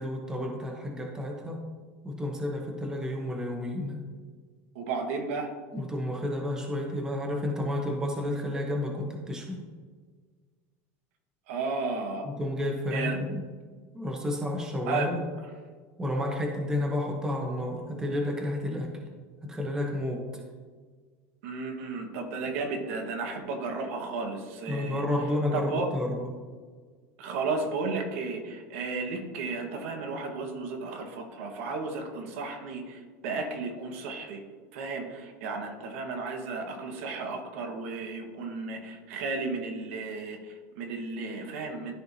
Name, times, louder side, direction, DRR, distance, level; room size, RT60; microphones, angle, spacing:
voice 1, 0.0-1.6 2.0-4.0 5.7-9.6 12.2-13.4 13.9-15.2 16.0-18.9 19.4-20.2 24.7-26.3, left 1 dB, 10° right, 1 dB, 0.9 m, -31 dB
voice 2, 4.7-5.5 11.5-12.3 12.9-13.2 14.8-15.1 21.4-25.0 25.5-25.9 27.2-34.4 34.7-41.9, right 3 dB, 75° right, 3 dB, 1.4 m, -33 dB
13.0 x 4.5 x 2.7 m, 1.5 s
supercardioid pair, 170°, 7 cm